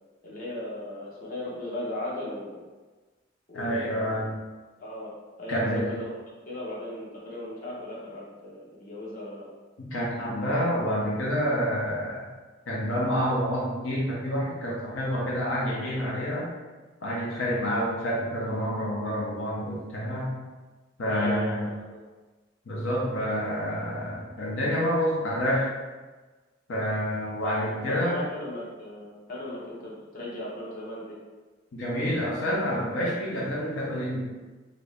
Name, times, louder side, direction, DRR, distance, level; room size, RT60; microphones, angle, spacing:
voice 1, 0.2-2.6 3.5-4.2 4.8-5.1 5.4-6.1 6.5-9.5 21.1-22.0 27.4-31.2, left 1 dB, 45° left, -6 dB, 0.9 m, -37 dB
voice 2, 3.5-4.4 5.5-5.9 9.8-12.3 12.7-16.5 17.0-20.4 21.0-21.7 22.7-25.7 26.7-28.2 31.7-34.2, equal, 85° left, -5 dB, 0.7 m, -28 dB
2.8 x 2.6 x 3.3 m, 1.3 s
head